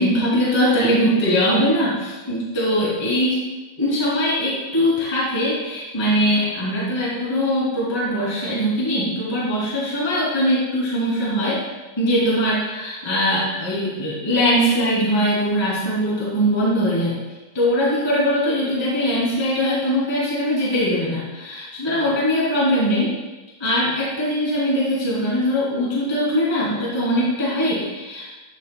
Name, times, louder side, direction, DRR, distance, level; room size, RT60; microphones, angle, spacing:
voice 1, 0.0-3.4 3.8-11.6 12.0-17.2 17.5-23.1 23.6-28.3, equal, 10° left, -8 dB, 2.6 m, -21 dB
14.5 x 8.3 x 2.3 m, 1.2 s
omnidirectional pair, 4.3 m